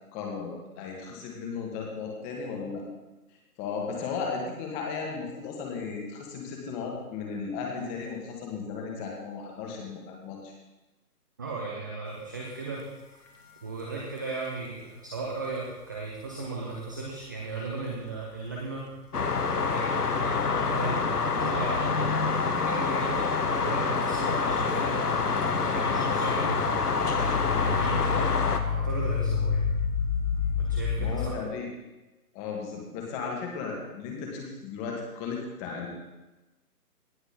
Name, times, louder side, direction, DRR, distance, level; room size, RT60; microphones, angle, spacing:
voice 1, 0.1-2.8 3.6-10.5 31.0-31.7 32.3-35.9, left 5 dB, 15° left, 0 dB, 1.7 m, -35 dB
voice 2, 11.4-12.8 13.6-18.9 19.5-23.2 23.5-25.0 25.6-28.3 28.7-29.6 30.6-31.3, right 3 dB, 15° right, -2 dB, 0.7 m, -36 dB
sound 1, 12.5-12.6 13.3-13.4 14.3-14.4 17.5-17.9 19.5-19.6 20.3-31.3, left 6 dB, 50° left, 3.0 m, -31 dB
sound 2, 19.1-28.6, left 4 dB, 75° left, 1.4 m, -27 dB
17.5 x 7.4 x 4.3 m, 1.1 s
figure-of-eight pair, 150°, 47 cm